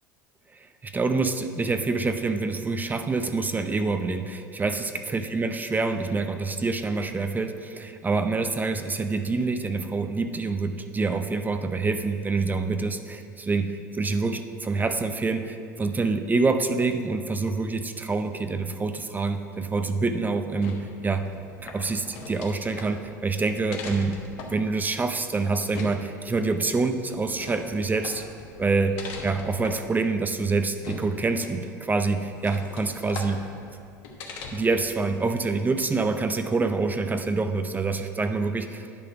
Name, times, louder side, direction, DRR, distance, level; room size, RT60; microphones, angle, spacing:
voice 1, 0.5-21.3 21.6-24.2 24.5-28.2 28.6-33.5 34.5-38.9, right 3 dB, 20° right, 8 dB, 0.5 m, -26 dB
sound 1, 20.6-34.9, left 3 dB, 60° left, 1.2 m, -41 dB
10.0 x 3.9 x 5.8 m, 2.4 s
hypercardioid pair, 80°, 10 cm